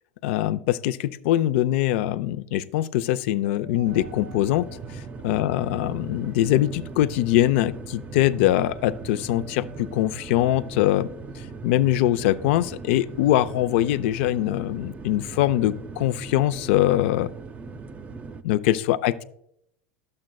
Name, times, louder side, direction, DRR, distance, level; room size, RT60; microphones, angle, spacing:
voice 1, 0.2-4.7 4.9-11.1 11.6-17.3 18.4-19.2, left 14 dB, 70° left, 13 dB, 0.4 m, -23 dB
sound 1, 3.4-10.9, right 4 dB, 65° right, 1.1 m, -46 dB
sound 2, 3.8-18.4, right 4 dB, 25° right, 0.5 m, -40 dB
12.0 x 7.5 x 2.3 m, 0.75 s
supercardioid pair, 105°, 7 cm